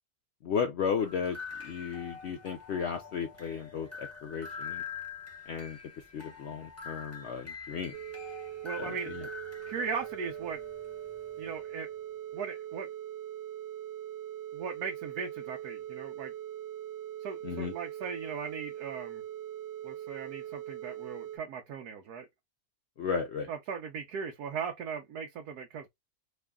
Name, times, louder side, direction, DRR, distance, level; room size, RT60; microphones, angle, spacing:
voice 1, 0.4-4.8 5.5-5.8 6.1-7.9 8.8-9.2 17.4-17.7 23.0-23.5, left 6 dB, 70° left, 0.6 m, -34 dB
sound 1, 1.0-11.7, left 5 dB, 10° left, 0.8 m, -45 dB
sound 2, 7.9-21.4, right 11 dB, 65° right, 0.9 m, -41 dB
voice 2, 8.6-9.1 9.7-10.7 11.4-11.9 12.3-12.9 14.5-16.3 17.2-19.2 19.8-22.3 23.5-25.9, right 6 dB, 85° right, 1.1 m, -38 dB
3.1 x 2.2 x 3.5 m
omnidirectional pair, 1.6 m